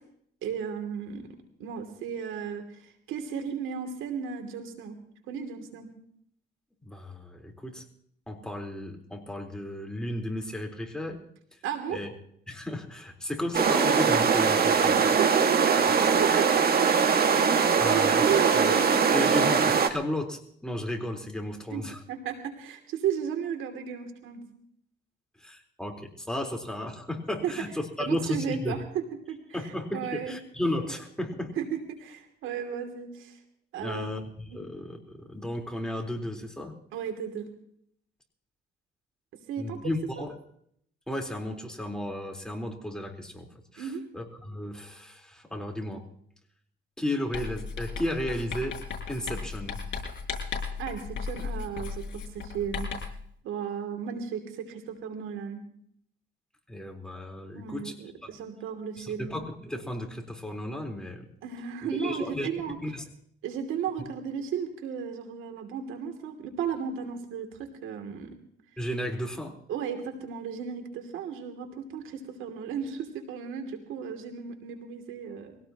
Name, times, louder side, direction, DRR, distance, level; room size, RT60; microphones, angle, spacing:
voice 1, 0.4-1.3 1.6-4.9 5.3-5.9 11.6-12.0 15.2-16.9 17.9-19.5 21.7-24.4 27.4-27.5 28.0-29.4 29.9-30.4 31.6-33.4 33.7-34.1 34.5-34.6 36.9-37.5 39.5-39.8 40.2-40.3 43.8-44.0 50.8-52.9 53.4-55.6 57.5-59.4 61.4-62.8 63.4-68.3 69.7-75.6, right 7 dB, 90° right, 5 dB, 2.9 m, -34 dB
voice 2, 6.8-7.8 8.3-11.2 11.9-12.1 12.5-15.2 15.7-16.0 17.8-18.9 19.1-22.0 25.4-28.8 29.5-31.5 33.8-36.7 39.6-40.4 41.1-43.5 43.7-46.1 47.0-48.8 49.1-49.8 56.7-58.0 59.0-61.3 62.0-63.1 68.8-69.6, left 1 dB, 5° left, 1 dB, 4.2 m, -34 dB
sound 1, 13.5-19.9, right 6 dB, 50° right, 2.1 m, -22 dB
Writing, 47.3-53.2, left 5 dB, 65° left, 6.2 m, -36 dB
23.0 x 17.5 x 3.0 m, 0.67 s
cardioid pair, 90°, 20 cm